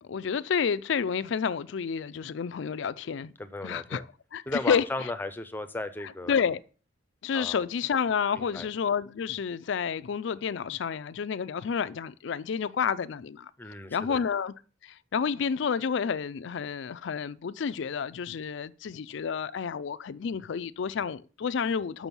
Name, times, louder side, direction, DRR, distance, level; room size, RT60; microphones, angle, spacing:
voice 1, 0.0-3.3 3.6-4.1 4.3-4.8 6.0-6.6 7.2-13.5 13.9-14.5 14.8-22.1, left 6 dB, 60° left, 0.4 m, -30 dB
voice 2, 3.4-4.0 4.5-6.5 7.3-7.6 8.3-8.7 13.6-14.2, left 2 dB, 10° left, 0.5 m, -36 dB
6.2 x 6.1 x 5.3 m
head